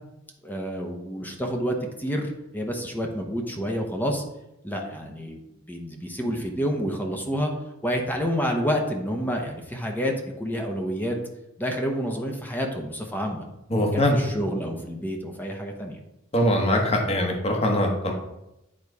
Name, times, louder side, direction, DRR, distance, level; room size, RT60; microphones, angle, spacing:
voice 1, 0.4-4.2 4.6-5.4 5.7-7.5 7.8-11.2 11.6-13.5 13.8-16.0, equal, 10° left, 2 dB, 0.9 m, -29 dB
voice 2, 13.7-14.2 16.3-18.1, left 1 dB, 30° left, 1 dB, 1.3 m, -22 dB
8.7 x 4.1 x 4.8 m, 0.89 s
head